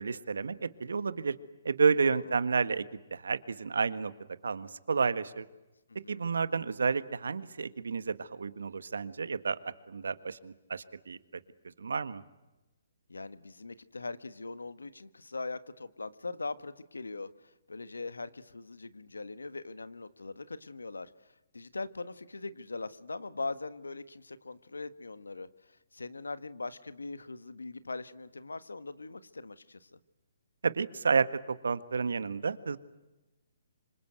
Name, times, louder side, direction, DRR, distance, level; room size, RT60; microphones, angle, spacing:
voice 1, 0.0-1.4 1.6-2.8 3.1-4.1 4.4-5.5 6.1-9.6 9.9-11.2 11.8-12.2 30.6-32.8, right 5 dB, 75° right, 14 dB, 1.6 m, -30 dB
voice 2, 2.0-2.4 6.0-6.3 13.1-21.1 21.5-30.0, left 3 dB, 90° left, 14 dB, 1.5 m, -41 dB
26.5 x 25.0 x 8.1 m, 1.0 s
hypercardioid pair, 140°, 0 cm